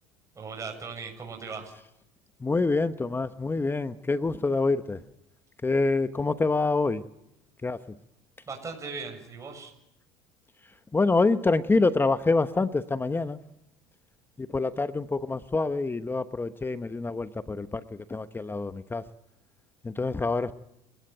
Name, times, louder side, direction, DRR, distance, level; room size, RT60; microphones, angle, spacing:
voice 1, 0.4-1.7 8.5-9.7, right 4 dB, 25° right, 3 dB, 7.2 m, -38 dB
voice 2, 2.4-5.0 5.6-7.0 7.6-8.0 10.9-13.4 14.4-19.0 19.8-20.5, left 3 dB, 15° left, 12 dB, 1.0 m, -26 dB
29.5 x 17.5 x 9.1 m, 0.85 s
supercardioid pair, 90°, 13 cm